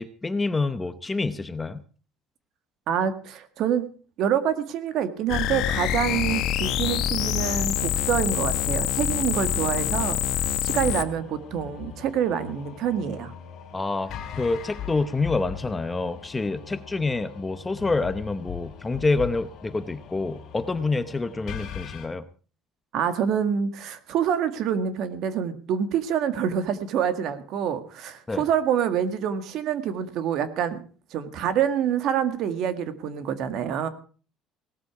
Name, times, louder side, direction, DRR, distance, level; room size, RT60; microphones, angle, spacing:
voice 1, 0.0-1.8 13.7-14.1 14.4-22.3 28.3-28.4, left 3 dB, 10° left, 11 dB, 0.8 m, -27 dB
voice 2, 2.9-3.9 4.2-13.3 22.9-30.8 31.1-33.9, right 8 dB, 55° right, 10 dB, 1.8 m, -26 dB
sound 1, 5.3-11.1, left 11 dB, 55° left, 1.3 m, -25 dB
sound 2, 10.8-22.1, left 9 dB, 40° left, 4.9 m, -41 dB
18.0 x 13.5 x 4.8 m, 0.39 s
cardioid pair, 160°, 0 cm